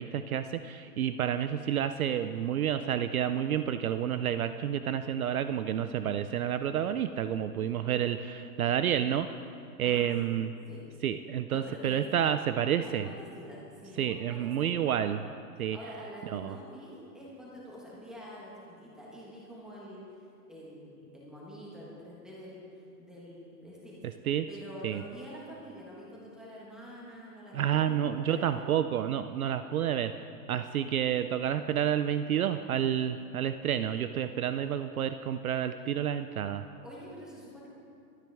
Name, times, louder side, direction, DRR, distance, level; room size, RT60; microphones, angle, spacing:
voice 1, 0.0-9.3 9.8-10.5 11.0-13.1 14.0-15.2 15.6-15.8 16.3-16.5 24.3-24.5 24.8-25.0 27.5-30.1 30.5-36.6, right 9 dB, 60° right, 10 dB, 0.5 m, -29 dB
voice 2, 9.8-10.3 10.7-10.8 11.5-12.3 12.8-14.9 15.6-24.0 24.5-28.6 36.8-37.7, equal, ahead, -6 dB, 1.4 m, -47 dB
22.0 x 9.3 x 3.5 m, 2.5 s
hypercardioid pair, 170°, 49 cm